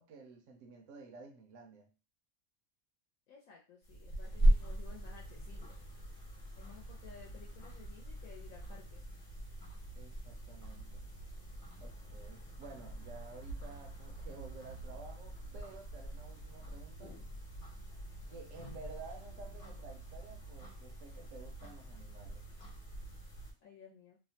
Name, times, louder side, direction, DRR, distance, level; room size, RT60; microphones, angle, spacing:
voice 1, 0.0-1.9 10.0-11.1 11.8-17.2 18.3-22.5, right 4 dB, 70° right, 0.9 m, -52 dB
voice 2, 3.3-5.8 6.6-9.0 23.6-24.2, left 7 dB, 80° left, 1.0 m, -56 dB
sound 1, 3.8-23.5, right 1 dB, 45° left, 1.1 m, -39 dB
2.8 x 2.0 x 2.7 m
omnidirectional pair, 1.4 m